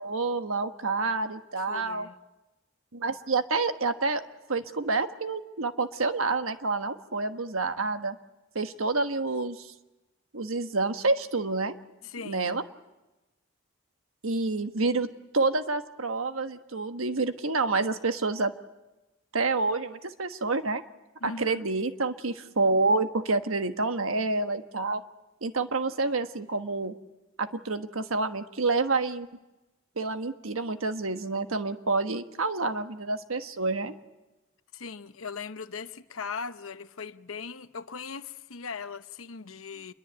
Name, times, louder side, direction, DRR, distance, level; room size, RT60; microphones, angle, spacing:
voice 1, 0.0-2.1 2.9-4.2 4.5-8.2 8.5-9.7 10.3-11.7 12.2-12.6 14.2-15.1 15.3-18.5 19.3-20.8 21.2-25.0 25.4-26.9 27.4-29.3 30.0-33.9, right 3 dB, 90° right, 1.3 m, -28 dB
voice 2, 1.6-2.1 12.0-12.5 21.2-21.7 34.7-39.9, left 5 dB, 85° left, 0.9 m, -39 dB
27.0 x 22.0 x 8.2 m
head